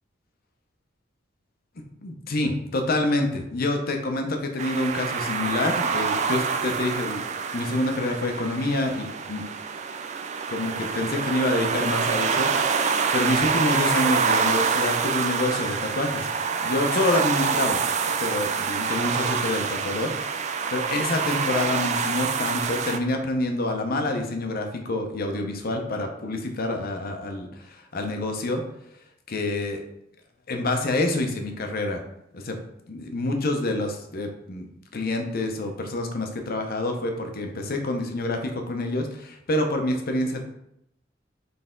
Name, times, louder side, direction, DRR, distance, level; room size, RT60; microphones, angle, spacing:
voice 1, 2.0-7.2 7.5-9.4 10.5-12.9 13.1-16.3 16.6-17.8 18.2-20.1 20.4-28.6 29.3-29.8 30.5-32.0 32.3-32.6 32.9-34.7 34.9-40.4, left 2 dB, 50° left, 4 dB, 0.7 m, -27 dB
sound 1, 4.6-23.0, right 6 dB, 35° right, 0.3 m, -26 dB
4.2 x 3.3 x 3.8 m, 0.78 s
head